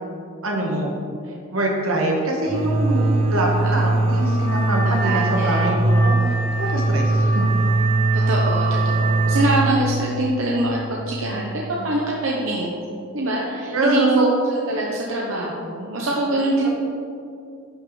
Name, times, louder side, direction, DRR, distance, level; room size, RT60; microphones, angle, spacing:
voice 1, 0.4-0.9 1.5-6.2 6.6-7.4 13.7-14.4, right 2 dB, 85° right, 0 dB, 1.3 m, -23 dB
sound 1, 2.5-12.0, right 2 dB, 25° right, 0.4 m, -21 dB
Car / Alarm, 4.0-9.5, right 4 dB, 15° left, 1.8 m, -29 dB
voice 2, 4.8-5.7 8.3-12.7 13.1-16.7, right 1 dB, 70° right, -3 dB, 0.8 m, -24 dB
11.0 x 5.1 x 3.2 m, 2.5 s
head